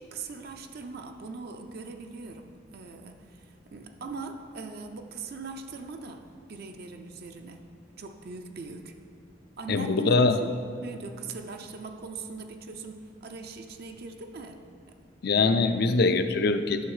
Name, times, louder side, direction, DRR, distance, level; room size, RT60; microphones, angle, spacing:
voice 1, 0.0-7.6 8.0-9.0 9.6-10.5 10.8-14.6 14.9-15.0, right 3 dB, 55° right, 5 dB, 0.5 m, -40 dB
voice 2, 9.7-10.4 15.2-16.8, left 3 dB, 55° left, 9 dB, 0.4 m, -23 dB
9.1 x 6.2 x 4.8 m, 2.3 s
head